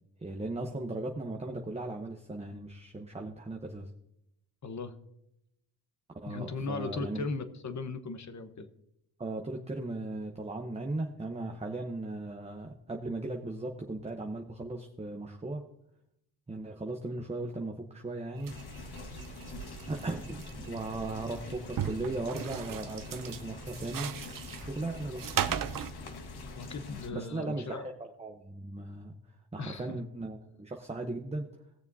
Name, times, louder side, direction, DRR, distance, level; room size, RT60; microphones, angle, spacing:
voice 1, 0.2-3.9 6.2-7.2 9.2-15.6 16.5-18.5 19.5-19.6 19.9-24.1 24.6-25.6 27.1-29.1 29.5-31.5, right 2 dB, 15° right, 2 dB, 0.9 m, -37 dB
voice 2, 4.6-4.9 6.3-8.7 19.5-19.6 26.5-27.9 29.6-30.0, left 3 dB, 35° left, 9 dB, 1.1 m, -37 dB
sound 1, 18.4-25.9, right 9 dB, 45° right, 0.7 m, -38 dB
sound 2, 18.5-27.1, left 3 dB, 55° left, 1.5 m, -45 dB
19.0 x 6.8 x 2.7 m, 0.82 s
cardioid pair, 75°, 47 cm